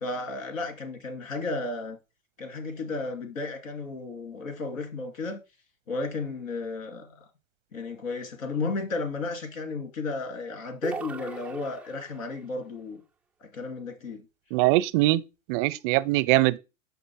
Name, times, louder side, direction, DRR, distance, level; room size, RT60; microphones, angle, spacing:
voice 1, 0.0-2.0 2.4-5.4 5.9-7.1 7.7-13.0 13.4-14.2, left 3 dB, 75° left, 2.3 m, -33 dB
sound 1, 10.8-12.4, right 3 dB, 5° right, 0.3 m, -38 dB
voice 2, 14.5-15.2 15.5-16.6, right 18 dB, 40° right, 0.6 m, -22 dB
6.7 x 5.3 x 4.5 m
hypercardioid pair, 95°, 40 cm